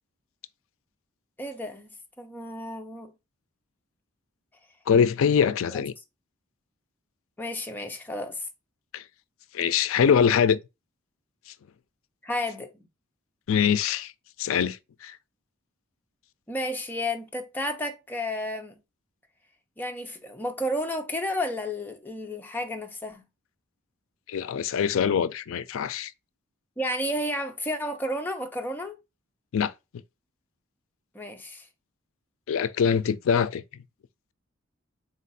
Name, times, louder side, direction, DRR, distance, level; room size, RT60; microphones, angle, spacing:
voice 1, 1.4-1.9 2.2-3.1 5.7-5.8 7.4-8.5 12.2-12.7 16.5-18.8 19.8-23.2 26.8-29.0 31.1-31.7, left 1 dB, 10° left, 0.6 m, -32 dB
voice 2, 4.9-5.9 8.9-9.0 9.5-10.6 13.5-14.1 14.4-15.2 24.3-26.1 29.5-29.7 32.5-33.6, left 7 dB, 70° left, 0.4 m, -23 dB
4.0 x 2.5 x 4.0 m
head